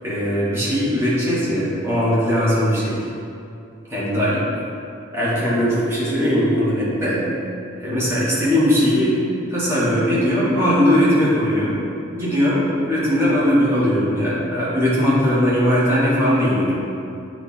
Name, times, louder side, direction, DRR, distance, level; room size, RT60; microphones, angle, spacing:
voice 1, 0.0-3.0 3.9-4.4 5.1-7.3 7.8-11.8 12.1-16.7, equal, 10° right, -9 dB, 1.4 m, -19 dB
7.8 x 3.1 x 4.3 m, 2.6 s
head